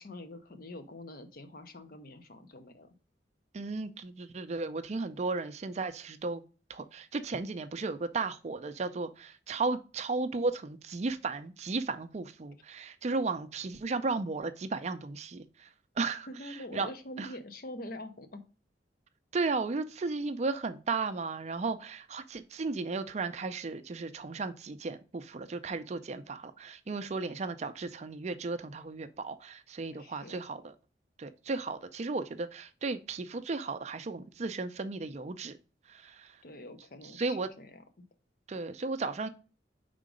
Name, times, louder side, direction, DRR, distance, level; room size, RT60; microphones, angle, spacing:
voice 1, 0.0-2.9 16.3-18.4 29.9-30.4 36.4-37.8, left 1 dB, 55° left, 0.8 m, -45 dB
voice 2, 3.5-6.4 6.7-15.7 16.0-16.9 17.2-17.3 19.3-30.6 31.2-35.6 35.9-36.4 37.1-37.5 38.5-39.3, right 3 dB, 40° right, 0.4 m, -35 dB
5.0 x 3.7 x 5.0 m
head